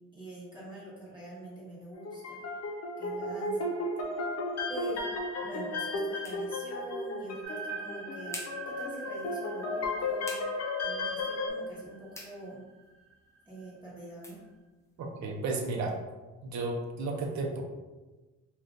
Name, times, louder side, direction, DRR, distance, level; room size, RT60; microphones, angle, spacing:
voice 1, 0.1-2.4 3.0-3.7 4.7-5.1 5.4-8.4 8.7-10.3 10.8-12.6 13.5-14.4, right 1 dB, 15° right, -8 dB, 1.0 m, -45 dB
sound 1, 1.9-11.5, left 2 dB, 55° left, 0.7 m, -34 dB
sound 2, 4.5-16.0, left 1 dB, 10° left, 0.5 m, -52 dB
sound 3, 7.4-13.6, right 5 dB, 45° right, 1.3 m, -45 dB
voice 2, 15.0-16.0 16.4-17.6, right 3 dB, 65° right, 2 dB, 0.7 m, -33 dB
2.6 x 2.4 x 3.6 m, 1.2 s
cardioid pair, 90°, 30 cm